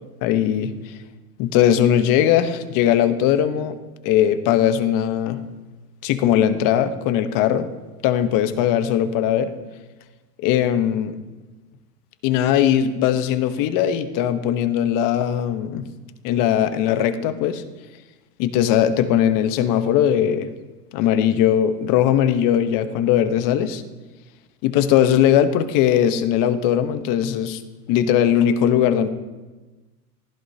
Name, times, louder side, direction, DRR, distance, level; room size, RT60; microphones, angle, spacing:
voice 1, 0.2-0.7 1.4-3.8 4.0-5.4 6.0-7.7 8.0-9.5 10.4-11.2 12.2-15.9 16.2-17.6 18.4-20.5 20.9-23.8 24.6-27.6 27.9-29.1, left 10 dB, 40° left, 10 dB, 1.1 m, -19 dB
24.5 x 15.0 x 2.9 m, 1.2 s
hypercardioid pair, 120°, 48 cm